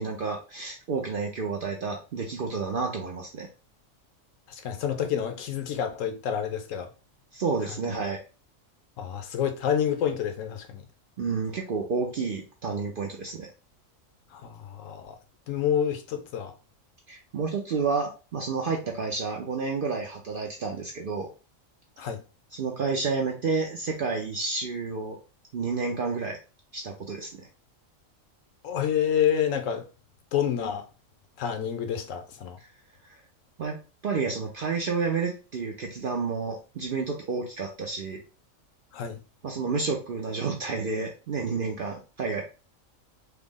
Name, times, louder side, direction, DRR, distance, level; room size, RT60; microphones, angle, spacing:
voice 1, 0.0-3.5 7.3-8.2 11.2-13.5 17.1-21.3 22.5-25.2 25.5-26.4 26.7-27.5 33.0-33.2 33.6-33.8 34.0-38.2 39.4-42.4, right 4 dB, 60° right, 0.5 m, -30 dB
voice 2, 4.5-6.9 9.0-10.8 14.3-15.2 15.5-16.5 22.0-22.2 28.6-29.9 30.3-30.9 31.4-32.6 38.9-39.2, left 9 dB, 75° left, 1.0 m, -28 dB
3.4 x 2.0 x 3.6 m
omnidirectional pair, 1.4 m